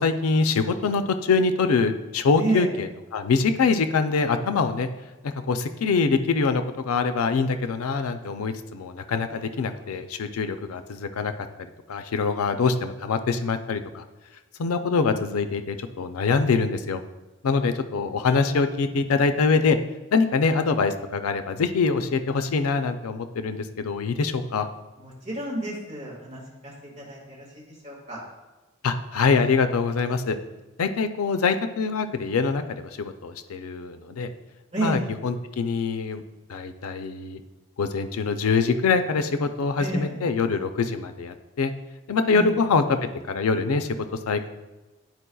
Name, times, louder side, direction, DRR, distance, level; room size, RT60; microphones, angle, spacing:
voice 1, 0.0-2.9 3.1-4.9 5.2-11.3 11.9-14.0 14.6-17.0 17.4-19.8 20.1-24.7 28.8-30.4 30.8-34.3 34.8-36.2 36.5-37.4 37.8-41.7 42.1-43.0 43.3-44.0 44.3-44.5, left 4 dB, 90° left, 9 dB, 0.5 m, -24 dB
voice 2, 2.4-2.7 9.3-9.8 25.0-28.2 34.7-35.0 39.8-40.1 42.3-42.5, right 2 dB, 30° right, -4 dB, 1.6 m, -31 dB
11.5 x 4.5 x 2.3 m, 1.1 s
head